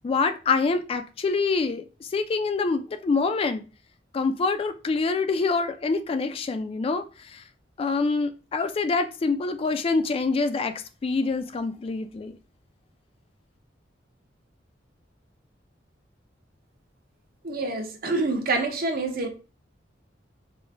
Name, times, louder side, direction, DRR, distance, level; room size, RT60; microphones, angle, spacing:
voice 1, 0.0-3.6 4.1-7.4 7.8-10.7 11.0-12.4, left 4 dB, 30° left, 0.3 m, -26 dB
voice 2, 17.4-19.3, right 3 dB, 55° right, 0.7 m, -27 dB
4.8 x 2.1 x 2.5 m
head